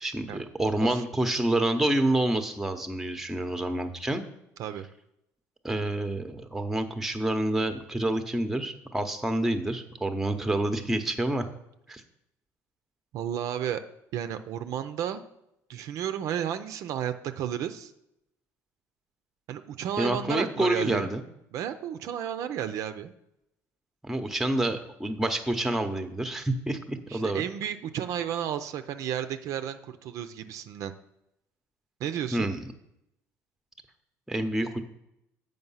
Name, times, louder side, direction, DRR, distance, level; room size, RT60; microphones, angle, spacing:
voice 1, 0.0-4.2 5.6-11.5 11.9-12.0 20.0-21.2 24.0-27.4 32.3-32.6 34.3-34.8, right 1 dB, 5° right, 7 dB, 0.8 m, -28 dB
voice 2, 13.1-13.8 14.1-15.2 15.7-17.9 19.5-21.1 21.5-23.1 27.1-30.9 32.0-32.5, right 10 dB, 65° right, 9 dB, 0.5 m, -32 dB
7.8 x 5.3 x 5.6 m, 0.83 s
cardioid pair, 115°, 6 cm